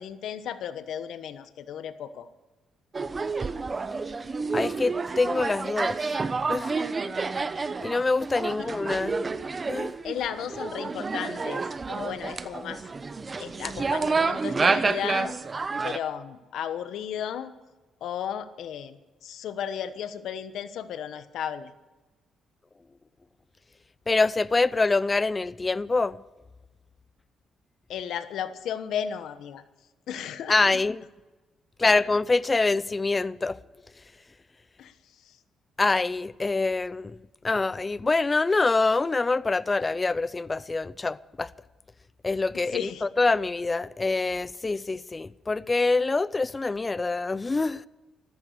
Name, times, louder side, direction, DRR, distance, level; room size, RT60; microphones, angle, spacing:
voice 1, 0.0-2.3 8.5-8.7 10.0-12.8 13.4-15.4 15.8-17.5 18.0-21.7 27.9-29.6 30.1-30.6 31.8-32.1 34.8-35.4 42.5-43.1, left 9 dB, 75° left, 1.2 m, -34 dB
sound 1, 2.9-16.0, right 4 dB, 30° right, 0.9 m, -29 dB
voice 2, 4.5-6.1 6.5-6.7 7.8-9.2 9.7-10.0 24.1-26.2 30.5-31.0 31.8-33.6 35.8-37.2 37.4-41.5 42.2-47.9, left 3 dB, 25° left, 0.5 m, -25 dB
14.0 x 14.0 x 6.7 m
cardioid pair, 90°, 0 cm